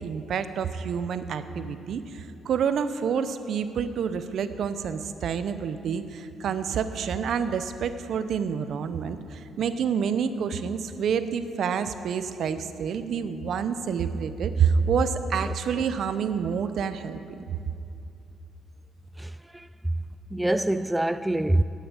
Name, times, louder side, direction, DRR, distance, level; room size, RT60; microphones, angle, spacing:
voice 1, 0.0-17.4, right 6 dB, 65° right, 0.7 m, -28 dB
voice 2, 19.2-19.9 20.3-21.6, right 1 dB, 10° right, 0.3 m, -26 dB
9.7 x 9.0 x 8.7 m
cardioid pair, 90°, 0 cm